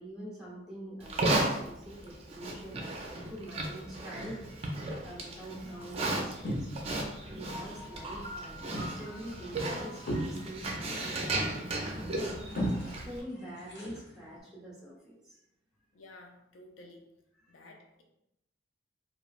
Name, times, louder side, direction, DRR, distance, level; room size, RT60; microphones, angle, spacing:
voice 1, 0.0-6.7 7.3-12.4 12.8-15.4 17.5-17.6, right 1 dB, 5° right, -6 dB, 0.9 m, -45 dB
Livestock farm animals working animals, 1.0-13.2, right 2 dB, 30° right, 0.4 m, -35 dB
sound 1, 5.4-7.1 7.4-8.1 8.4-14.4, equal, 55° left, 0.8 m, -39 dB
Piano, 7.5-12.3, left 1 dB, 40° left, 1.2 m, -48 dB
voice 2, 15.9-17.1 17.5-18.0, left 2 dB, 75° left, 2 dB, 0.5 m, -53 dB
3.1 x 2.4 x 2.4 m, 0.84 s
head